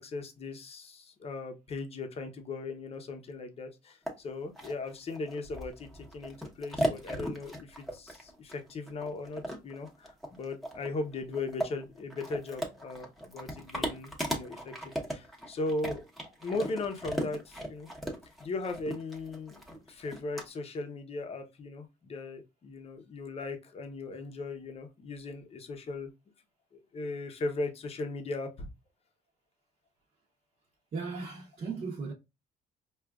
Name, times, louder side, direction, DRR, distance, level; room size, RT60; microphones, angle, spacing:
voice 1, 0.0-14.7 15.1-16.0 16.4-17.9 18.4-19.6 19.9-26.1 26.7-28.7, left 3 dB, 35° left, 0.8 m, -38 dB
sound 1, 4.1-4.2 4.6-20.4, equal, ahead, 1.0 m, -37 dB
voice 2, 30.9-32.1, right 4 dB, 45° right, 0.9 m, -36 dB
4.8 x 2.4 x 2.3 m
cardioid pair, 110°, 17 cm